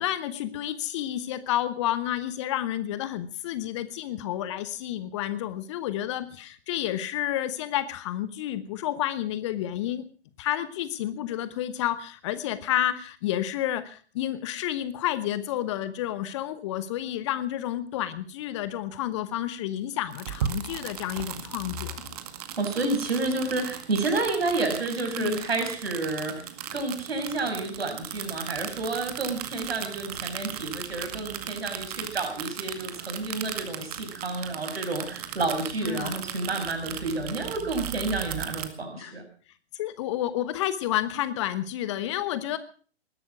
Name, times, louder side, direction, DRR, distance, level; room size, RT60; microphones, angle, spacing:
voice 1, 0.0-10.0 10.4-22.0 25.2-25.4 35.8-36.1 38.9-39.1 39.7-42.6, left 12 dB, 25° left, 13 dB, 1.1 m, -30 dB
sound 1, 20.1-38.7, right 10 dB, 35° right, 2.0 m, -37 dB
voice 2, 22.6-26.4 26.7-39.2, right 3 dB, 65° right, 5 dB, 6.2 m, -30 dB
20.0 x 12.0 x 6.1 m, 0.42 s
figure-of-eight pair, 125°, 33 cm